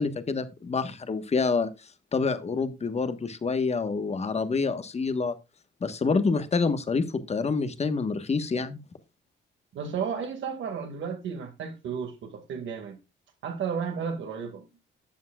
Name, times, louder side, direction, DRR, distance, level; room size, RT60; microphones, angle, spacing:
voice 1, 0.0-1.7 2.1-5.3 5.8-8.8, left 4 dB, 35° left, 1.3 m, -27 dB
voice 2, 9.7-13.0 13.4-14.6, right 6 dB, 70° right, 2.1 m, -33 dB
12.0 x 7.5 x 2.4 m
cardioid pair, 90°, 20 cm